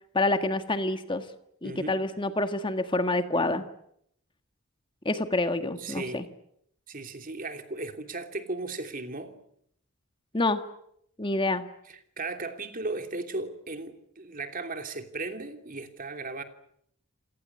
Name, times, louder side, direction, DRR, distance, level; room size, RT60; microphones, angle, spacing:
voice 1, 0.1-1.3 1.6-3.7 5.0-6.2 10.3-10.6 11.2-11.6, left 2 dB, 25° left, 9 dB, 1.6 m, -27 dB
voice 2, 1.6-2.0 5.8-6.2 6.9-9.3 12.2-16.4, right 3 dB, 40° right, 7 dB, 2.9 m, -36 dB
28.5 x 18.0 x 9.8 m, 0.72 s
head